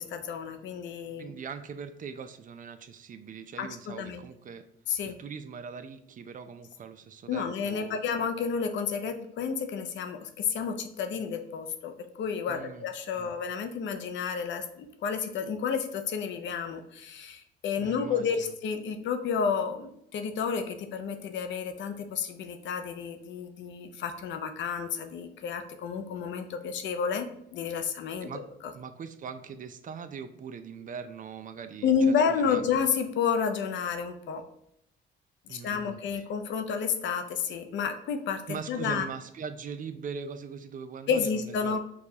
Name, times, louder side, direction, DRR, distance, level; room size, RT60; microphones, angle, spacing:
voice 1, 0.0-1.3 3.6-4.2 4.9-5.2 7.3-11.9 12.2-27.3 27.5-28.4 31.8-34.4 35.5-39.1 41.1-41.8, left 6 dB, 70° left, 7 dB, 0.5 m, -30 dB
voice 2, 1.2-4.6 5.0-8.0 12.5-12.9 13.1-13.4 17.8-18.5 28.2-28.4 28.7-32.7 35.5-36.2 38.5-41.8, right 6 dB, 45° right, 10 dB, 0.4 m, -41 dB
4.6 x 2.3 x 2.7 m, 0.75 s
cardioid pair, 90°, 20 cm